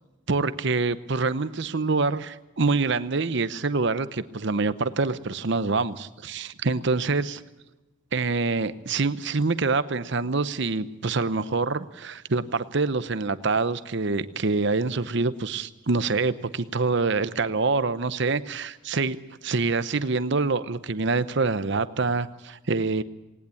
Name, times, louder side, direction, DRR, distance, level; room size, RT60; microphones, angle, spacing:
voice 1, 0.3-7.4 8.1-19.2 19.4-23.0, right 3 dB, 55° right, 14 dB, 0.8 m, -26 dB
19.0 x 18.5 x 8.4 m, 1.0 s
head